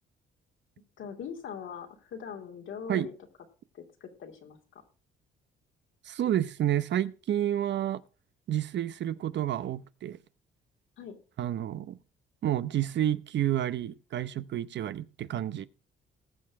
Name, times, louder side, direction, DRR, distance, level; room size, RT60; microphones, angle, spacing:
voice 1, 1.0-3.1 3.7-4.6 11.0-11.2, left 7 dB, 75° left, 2.6 m, -41 dB
voice 2, 6.1-8.0 8.5-10.2 11.4-12.0 12.4-15.7, right 11 dB, 65° right, 0.8 m, -30 dB
20.0 x 6.8 x 3.5 m
cardioid pair, 90°, 20 cm